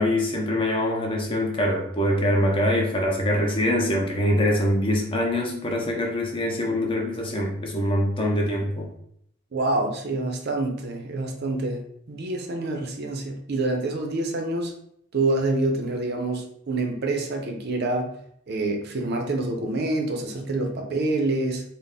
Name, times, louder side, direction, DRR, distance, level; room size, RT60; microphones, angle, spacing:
voice 1, 0.0-8.9, left 1 dB, 25° left, 0 dB, 0.6 m, -24 dB
voice 2, 9.5-11.8 12.1-14.7 15.1-18.1 18.5-21.6, right 2 dB, 50° right, 3 dB, 0.5 m, -26 dB
4.0 x 2.1 x 3.4 m, 0.70 s
head